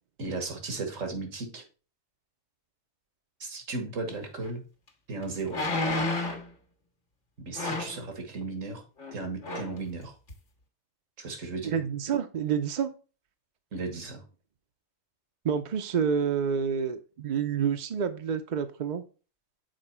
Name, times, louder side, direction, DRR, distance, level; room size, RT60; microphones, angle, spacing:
voice 1, 0.2-1.6 3.4-4.6 5.1-5.6 7.5-8.8 9.1-10.1 11.2-11.7 13.7-14.2, right 3 dB, 85° right, 5 dB, 1.9 m, -35 dB
sound 1, 4.5-4.6 5.5-6.5 7.6-8.0 9.0-9.2 9.4-9.8 10.3-10.4, left 2 dB, 70° left, 1.7 m, -30 dB
voice 2, 11.6-12.9 15.4-19.0, right 7 dB, 50° right, 6 dB, 0.6 m, -28 dB
6.6 x 4.6 x 4.3 m, 0.35 s
omnidirectional pair, 1.3 m